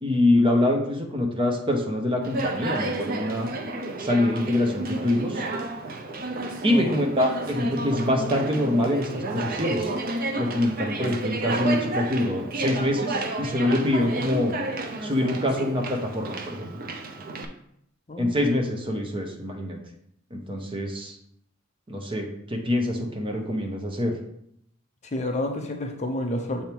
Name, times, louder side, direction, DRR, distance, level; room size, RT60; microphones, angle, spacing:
voice 1, 0.0-3.5 4.0-5.4 6.6-9.9 10.4-14.6 15.0-16.8 18.2-19.8 20.3-21.1 21.9-24.1, left 1 dB, 25° right, 2 dB, 1.0 m, -25 dB
Conversation, 2.2-17.4, right 2 dB, 45° right, 0.6 m, -31 dB
voice 2, 25.0-26.6, left 1 dB, 35° left, 4 dB, 0.7 m, -29 dB
7.1 x 3.5 x 4.5 m, 0.73 s
head